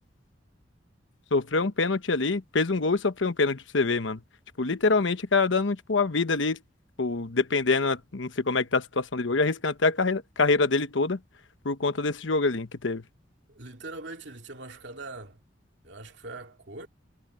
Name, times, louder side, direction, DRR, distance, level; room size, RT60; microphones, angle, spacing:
voice 1, 1.3-4.2 4.6-6.6 7.0-11.2 11.6-13.0, left 3 dB, 80° left, 1.1 m, -25 dB
voice 2, 13.5-15.4 15.8-16.9, right 2 dB, 65° right, 2.8 m, -42 dB
head